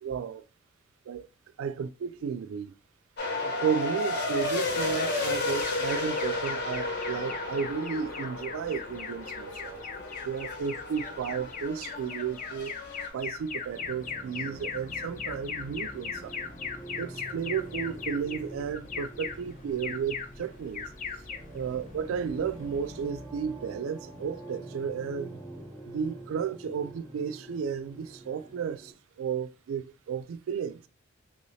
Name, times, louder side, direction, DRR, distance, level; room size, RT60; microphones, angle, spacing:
voice 1, 0.0-0.5 1.1-1.3 1.6-2.7 3.4-9.8 10.2-12.8 13.1-16.4 17.0-20.9 21.5-25.4 25.9-30.8, right 7 dB, 85° right, 0.3 m, -33 dB
sound 1, 3.2-13.1, left 2 dB, 55° left, 0.9 m, -33 dB
Alarm, 5.6-23.2, left 6 dB, 40° left, 0.4 m, -40 dB
sound 2, 13.7-28.9, right 2 dB, 10° left, 0.7 m, -46 dB
3.0 x 2.7 x 3.1 m
head